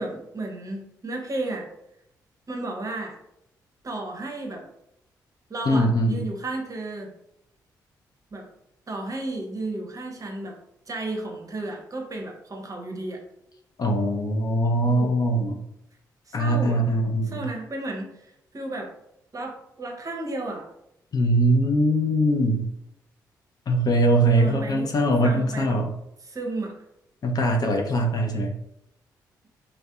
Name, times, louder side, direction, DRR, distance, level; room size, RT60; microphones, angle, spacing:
voice 1, 0.0-1.7 2.5-3.2 3.8-4.6 5.5-7.1 8.3-8.5 8.9-10.6 10.9-13.2 14.8-15.2 16.3-16.8 17.2-18.9 19.3-20.7 24.3-24.9 25.2-25.8 26.2-26.8, right 2 dB, 35° right, 1 dB, 0.6 m, -33 dB
voice 2, 5.7-6.2 13.8-15.6 16.3-17.5 21.1-22.7 23.7-25.9 27.2-28.5, right 1 dB, 45° left, 2 dB, 0.5 m, -22 dB
2.5 x 2.1 x 2.3 m, 0.80 s
hypercardioid pair, 40°, 9 cm